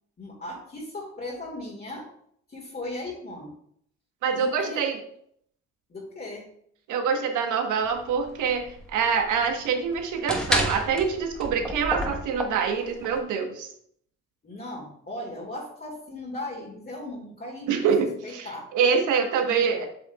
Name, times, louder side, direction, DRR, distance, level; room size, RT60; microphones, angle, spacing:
voice 1, 0.2-2.1 2.5-3.5 4.3-4.9 5.9-6.5 14.4-17.9 18.2-18.7 19.4-19.8, left 1 dB, 30° left, -3 dB, 2.0 m, -37 dB
voice 2, 4.2-5.0 6.9-13.7 17.7-19.9, right 6 dB, 85° right, 4 dB, 1.2 m, -25 dB
door slam, 7.8-13.2, equal, ahead, 1.1 m, -31 dB
8.2 x 6.0 x 2.3 m, 0.67 s
cardioid pair, 90°, 30 cm